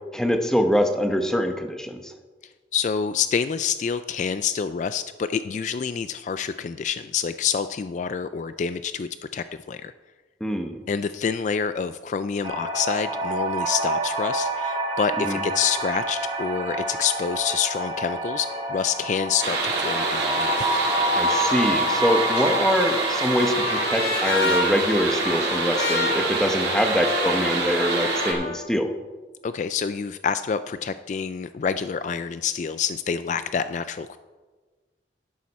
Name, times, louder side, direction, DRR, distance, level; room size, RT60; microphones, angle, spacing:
voice 1, 0.1-2.1 10.4-10.8 15.2-15.4 21.1-28.9, equal, 5° left, 5 dB, 0.9 m, -24 dB
voice 2, 2.7-9.9 10.9-20.8 29.4-34.2, left 6 dB, 45° left, 12 dB, 0.3 m, -27 dB
sound 1, 12.4-23.8, right 1 dB, 30° right, 1.8 m, -27 dB
sound 2, 19.4-28.3, right 3 dB, 70° right, 3.5 m, -26 dB
Trumpet, 23.1-28.6, left 3 dB, 65° left, 3.4 m, -30 dB
11.5 x 11.0 x 4.2 m, 1.4 s
head